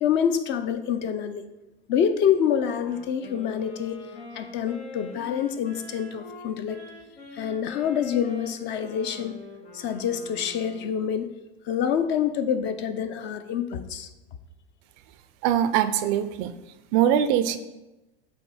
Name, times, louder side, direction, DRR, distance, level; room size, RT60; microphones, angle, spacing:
voice 1, 0.0-1.4 1.9-4.0 4.3-6.9 7.3-9.4 9.7-11.3 11.7-14.1, left 8 dB, 35° left, 10 dB, 0.5 m, -26 dB
Wind instrument woodwind instrument, 2.7-11.0, left 3 dB, 85° left, 1.9 m, -44 dB
voice 2, 15.4-16.6 16.9-17.6, right 10 dB, 45° right, 11 dB, 0.5 m, -22 dB
7.8 x 2.7 x 4.7 m, 1.0 s
hypercardioid pair, 100°, 32 cm